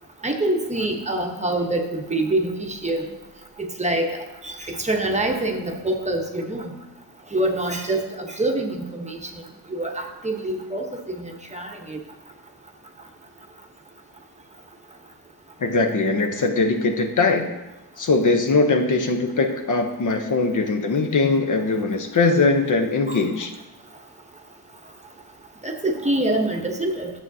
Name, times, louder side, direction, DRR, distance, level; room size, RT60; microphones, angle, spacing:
voice 1, 0.2-3.1 3.6-4.2 4.4-6.7 7.3-9.3 9.7-10.9 11.2-12.0 23.1-23.2 25.6-27.1, right 1 dB, 15° right, 2 dB, 0.9 m, -25 dB
voice 2, 15.6-17.5 18.0-23.5, left 3 dB, 50° left, 5 dB, 0.8 m, -21 dB
12.0 x 7.4 x 2.7 m, 1.0 s
wide cardioid pair, 135°, 41 cm